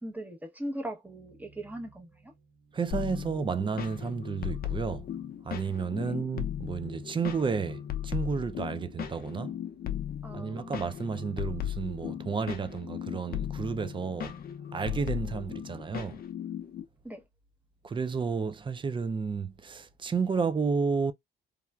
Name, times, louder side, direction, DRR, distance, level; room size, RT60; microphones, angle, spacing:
voice 1, 0.0-2.3 6.0-6.1 10.2-11.0 15.6-15.9 17.0-17.2, right 1 dB, 10° right, 0.9 m, -40 dB
sound 1, 1.0-7.6, right 4 dB, 50° right, 1.1 m, -61 dB
voice 2, 2.7-5.1 5.5-9.6 10.3-14.3 14.7-16.2 17.8-21.1, right 5 dB, 25° right, 0.4 m, -31 dB
sound 2, 2.9-16.8, left 10 dB, 50° left, 0.6 m, -37 dB
3.1 x 2.4 x 2.2 m
cardioid pair, 90°, 20 cm